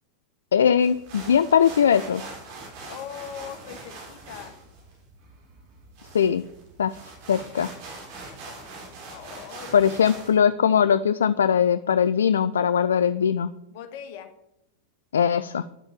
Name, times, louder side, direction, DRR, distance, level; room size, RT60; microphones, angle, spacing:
voice 1, 0.5-2.2 6.1-6.4 6.8-7.0 7.3-7.7 9.7-13.5 15.1-15.6, left 8 dB, 65° left, 14 dB, 0.4 m, -20 dB
sound 1, 0.8-10.4, right 3 dB, 45° right, 4.1 m, -43 dB
voice 2, 2.9-4.5 9.1-9.8 13.7-14.3, left 8 dB, 50° left, 7 dB, 1.6 m, -40 dB
10.5 x 7.0 x 7.3 m, 0.84 s
figure-of-eight pair, 90°, 0 cm